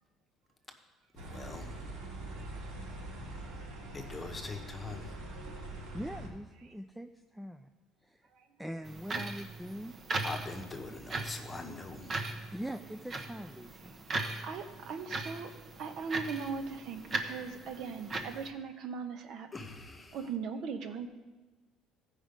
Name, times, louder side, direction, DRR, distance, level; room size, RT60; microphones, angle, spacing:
voice 1, 1.2-1.8 3.9-5.1 10.2-12.2 19.5-20.2, left 3 dB, 20° left, 4 dB, 1.0 m, -42 dB
sound 1, 1.2-6.3, right 1 dB, 80° right, 2.6 m, -43 dB
voice 2, 5.9-7.7 8.1-8.3 8.6-10.0 10.9-11.1 12.5-13.9, equal, 5° right, 6 dB, 0.4 m, -42 dB
sound 2, 8.8-18.5, right 3 dB, 35° right, 1.0 m, -39 dB
voice 3, 14.4-19.5 20.1-21.1, right 5 dB, 60° right, 7 dB, 0.9 m, -39 dB
15.0 x 5.0 x 5.2 m, 1.2 s
cardioid pair, 125°, 0 cm